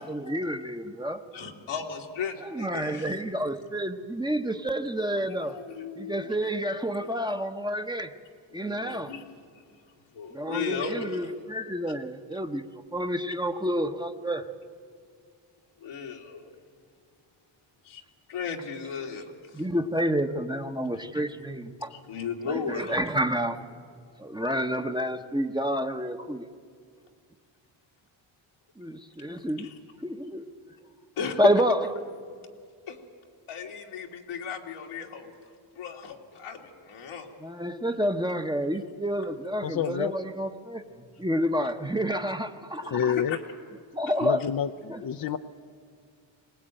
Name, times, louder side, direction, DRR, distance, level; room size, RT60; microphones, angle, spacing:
voice 1, 0.0-1.2 2.4-5.6 6.0-8.1 8.5-9.1 10.3-12.6 12.9-14.4 19.5-21.9 22.7-23.6 24.2-26.5 28.8-29.7 30.0-30.5 31.4-31.8 37.4-43.1 43.9-44.4 44.9-45.0, equal, 10° right, 7 dB, 1.0 m, -29 dB
voice 2, 1.3-3.2 5.2-6.4 7.0-7.1 8.5-9.6 10.1-11.3 15.8-16.6 17.8-18.0 18.3-19.6 21.9-23.0 29.5-29.8 31.2-31.4 32.9-33.0 33.5-35.3 35.8-37.3 42.8-43.4, left 6 dB, 90° left, 1 dB, 2.4 m, -36 dB
voice 3, 39.6-40.1 42.9-43.4 44.2-45.4, left 8 dB, 50° left, 6 dB, 0.7 m, -28 dB
22.0 x 19.0 x 9.0 m, 2.1 s
cardioid pair, 80°, 47 cm